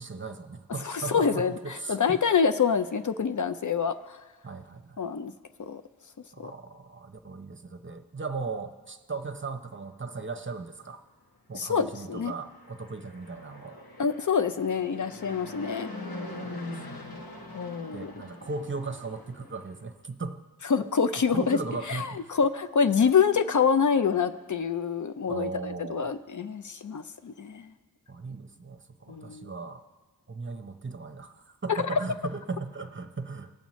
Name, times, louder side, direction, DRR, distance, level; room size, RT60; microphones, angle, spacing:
voice 1, 0.0-2.4 4.4-5.0 6.3-11.0 11.5-13.8 16.4-16.5 17.9-20.4 21.3-22.4 25.3-26.1 28.1-29.8 30.3-33.5, right 4 dB, 30° right, 7 dB, 0.7 m, -37 dB
voice 2, 0.8-4.2 5.0-5.3 5.6-5.8 6.4-6.5 11.5-12.3 14.0-15.9 17.5-18.1 20.7-21.6 21.9-27.7 29.1-29.5 31.7-32.0, left 6 dB, 55° left, 9 dB, 0.5 m, -26 dB
Fixed-wing aircraft airplane, 12.4-19.8, left 2 dB, 70° left, 1.1 m, -42 dB
20.0 x 7.2 x 3.1 m, 1.3 s
wide cardioid pair, 60°, 37 cm